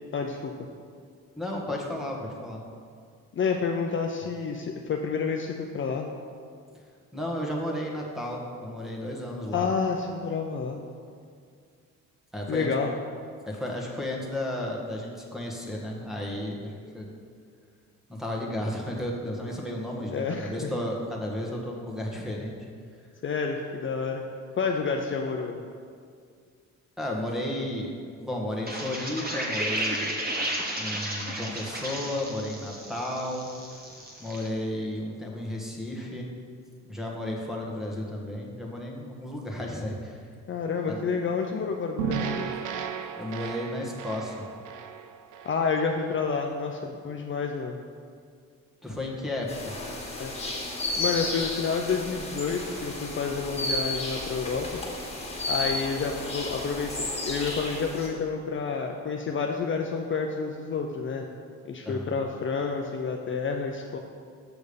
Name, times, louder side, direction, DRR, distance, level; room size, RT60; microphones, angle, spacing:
voice 1, 0.1-0.5 3.3-6.1 9.5-10.8 12.5-12.9 20.1-20.7 23.2-24.2 24.6-25.6 40.5-42.5 45.4-47.8 50.2-50.3 51.0-54.8 55.5-61.2 61.6-64.0, left 5 dB, 40° left, 2 dB, 0.6 m, -29 dB
voice 2, 1.4-2.6 7.1-9.7 12.3-12.7 13.5-17.1 18.1-22.5 27.0-27.9 28.2-30.2 30.8-33.5 34.2-36.3 36.8-40.2 40.9-41.0 43.2-44.4 48.8-49.7 61.8-62.1, left 1 dB, ahead, -1 dB, 1.5 m, -33 dB
sound 1, 28.6-34.5, right 1 dB, 30° right, 1.5 m, -33 dB
sound 2, 42.0-46.3, right 7 dB, 85° right, 0.6 m, -34 dB
sound 3, 49.5-58.1, left 2 dB, 20° left, 2.1 m, -33 dB
6.9 x 6.2 x 5.2 m, 2.2 s
cardioid pair, 90°, 30 cm